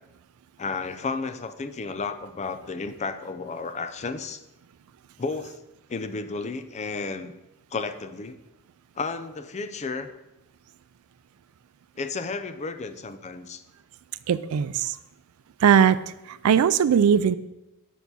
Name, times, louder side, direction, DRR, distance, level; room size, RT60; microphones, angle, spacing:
voice 1, 0.6-4.4 5.2-5.6 5.9-7.3 7.7-8.4 9.0-10.1 12.0-13.6, left 4 dB, 30° left, 10 dB, 0.5 m, -32 dB
voice 2, 14.3-15.0 15.6-16.0 16.3-17.3, right 7 dB, 75° right, 16 dB, 0.4 m, -19 dB
7.1 x 6.8 x 4.1 m, 0.94 s
head